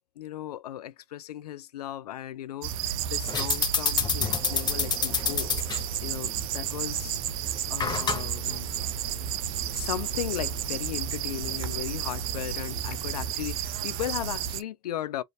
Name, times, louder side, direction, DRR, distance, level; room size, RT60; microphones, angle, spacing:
voice 1, 0.2-5.5 6.0-8.7 9.7-15.2, left 12 dB, 80° left, 0.4 m, -36 dB
sound 1, 2.6-14.6, right 10 dB, 65° right, 0.5 m, -32 dB
sound 2, 3.3-13.3, left 6 dB, 20° left, 0.7 m, -32 dB
3.3 x 2.5 x 2.8 m
hypercardioid pair, 80°, 20 cm